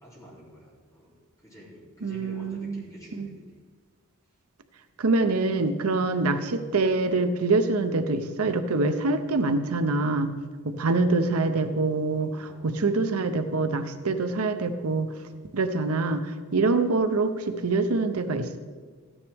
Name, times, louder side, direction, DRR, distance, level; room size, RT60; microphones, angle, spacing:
voice 1, 0.0-1.1 1.4-3.6 12.2-12.7 15.2-15.5, left 1 dB, 15° left, -6 dB, 3.0 m, -48 dB
voice 2, 2.0-2.8 3.1-3.4 5.0-10.3 10.6-15.1 15.5-18.6, right 3 dB, 85° right, 9 dB, 0.7 m, -25 dB
14.0 x 9.8 x 3.5 m, 1.5 s
head